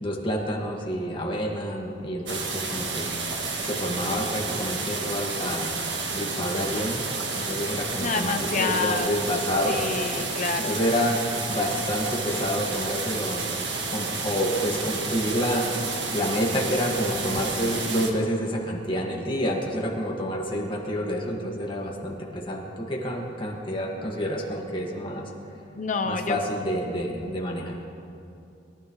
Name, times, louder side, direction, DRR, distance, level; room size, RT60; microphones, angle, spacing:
voice 1, 0.0-5.7 6.1-7.0 7.4-9.8 10.2-13.4 13.9-25.3 26.0-27.7, equal, 30° left, -2 dB, 1.9 m, -28 dB
sound 1, 2.3-18.1, right 4 dB, 85° right, 1.6 m, -31 dB
voice 2, 8.0-9.1 9.7-10.8 25.8-26.4 27.3-27.4, left 4 dB, 45° left, 6 dB, 0.7 m, -28 dB
23.0 x 12.0 x 3.2 m, 2.7 s
head